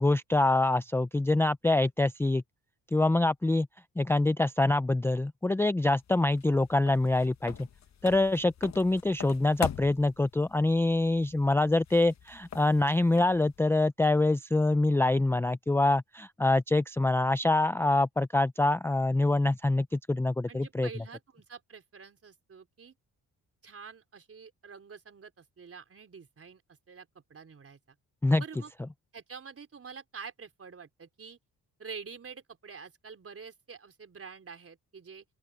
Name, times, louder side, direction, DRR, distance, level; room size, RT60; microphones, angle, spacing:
voice 1, 0.0-2.4 2.9-3.7 4.0-7.7 8.0-20.9 28.2-28.4, left 2 dB, 5° left, 0.4 m, -25 dB
sound 1, 5.9-13.6, left 9 dB, 50° left, 1.2 m, -44 dB
voice 2, 20.5-22.9 23.6-26.6 26.9-28.0 28.4-28.7 29.1-31.4 31.8-35.2, right 5 dB, 40° right, 4.3 m, -47 dB
open air
cardioid pair, 90°, 34 cm